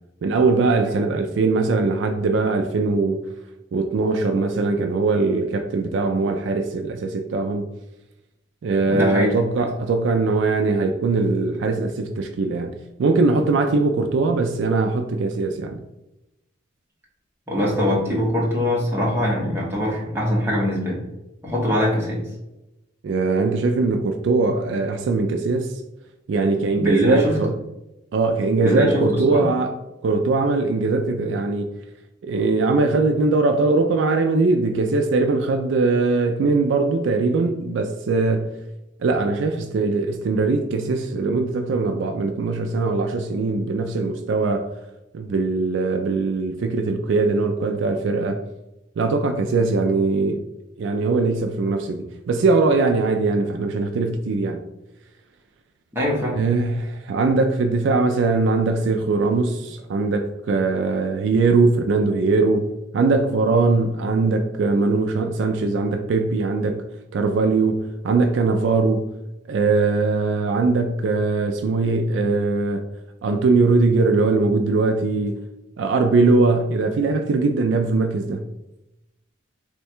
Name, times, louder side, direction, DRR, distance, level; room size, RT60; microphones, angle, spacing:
voice 1, 0.2-3.3 3.7-7.7 8.6-15.8 23.0-25.8 26.3-27.5 28.1-29.8 30.0-31.7 32.2-38.5 39.0-44.7 45.1-48.4 49.0-50.4 50.8-54.6 56.3-66.8 67.1-69.1 69.5-72.8 73.2-75.4 75.8-78.4, right 3 dB, 65° right, 0.3 m, -21 dB
voice 2, 8.8-9.3 9.6-9.7 17.5-21.0 21.4-22.2 26.7-27.4 28.6-29.5 55.9-56.4, left 1 dB, 10° right, 0.9 m, -22 dB
3.1 x 2.2 x 4.3 m
head